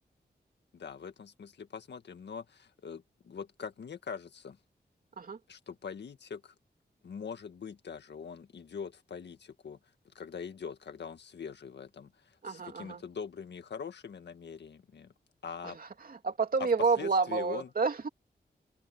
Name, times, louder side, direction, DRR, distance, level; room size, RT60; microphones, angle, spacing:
voice 1, 0.7-4.6 5.5-6.5 7.0-9.8 10.1-15.1 15.4-15.8 16.6-16.7 17.0-17.7, left 6 dB, 85° left, 1.8 m, -43 dB
voice 2, 12.4-13.0 15.6-18.1, right 4 dB, 55° right, 2.8 m, -30 dB
wide cardioid pair, 95°, 17 cm